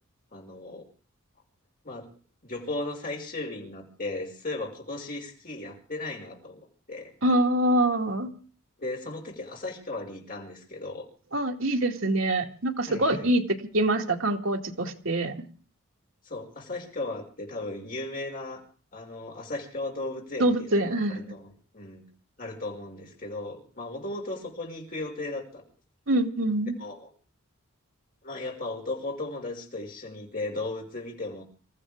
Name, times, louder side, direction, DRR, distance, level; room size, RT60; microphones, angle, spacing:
voice 1, 0.3-0.9 1.8-2.1 2.4-6.6 6.9-7.1 8.8-11.1 12.9-13.3 16.2-18.6 18.9-20.7 21.1-22.1 22.4-25.6 26.8-27.1 28.2-31.4, left 2 dB, 40° left, 0 dB, 5.5 m, -36 dB
voice 2, 7.2-8.3 11.3-13.4 13.7-15.3 20.4-21.2 26.1-26.8, right 1 dB, 65° right, 2 dB, 2.2 m, -25 dB
27.5 x 14.5 x 3.6 m, 0.40 s
head